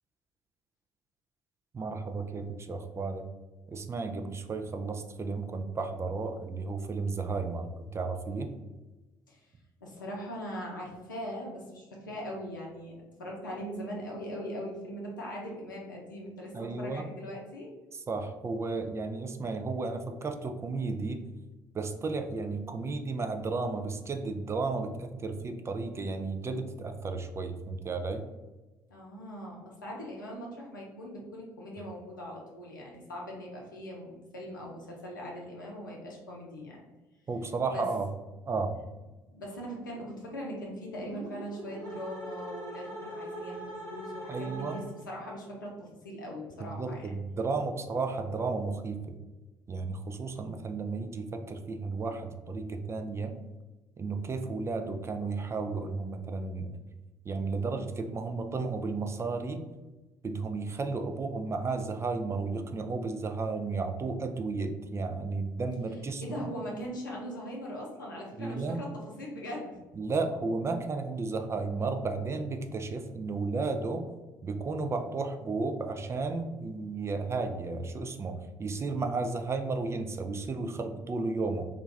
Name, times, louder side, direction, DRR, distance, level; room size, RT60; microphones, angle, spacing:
voice 1, 1.7-3.2 3.7-8.5 16.5-17.1 18.1-21.2 21.7-28.2 37.3-38.1 38.5-38.7 44.3-44.8 46.6-49.1 49.7-53.3 54.0-56.7 57.3-59.6 60.2-66.5 68.4-68.8 70.0-74.1 74.4-81.7, right 3 dB, 25° right, 6 dB, 0.3 m, -33 dB
voice 2, 9.8-17.7 28.9-36.8 37.7-37.8 39.3-47.1 66.2-69.7, equal, 85° left, -2 dB, 0.5 m, -40 dB
sound 1, 41.0-45.2, right 1 dB, 40° right, 1.0 m, -42 dB
2.4 x 2.3 x 3.1 m, 1.1 s
figure-of-eight pair, 50°, 10 cm